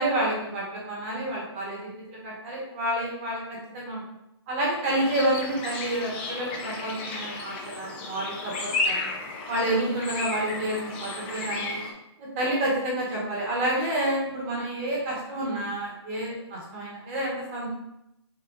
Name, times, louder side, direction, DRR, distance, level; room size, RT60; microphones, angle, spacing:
voice 1, 0.0-1.8 2.1-4.0 4.5-8.5 8.8-9.1 9.5-11.8 12.2-17.7, right 1 dB, 30° right, -4 dB, 1.5 m, -29 dB
sound 1, 4.9-11.9, left 3 dB, 20° left, 0.5 m, -33 dB
6.1 x 2.9 x 2.6 m, 0.84 s
hypercardioid pair, 160°, 14 cm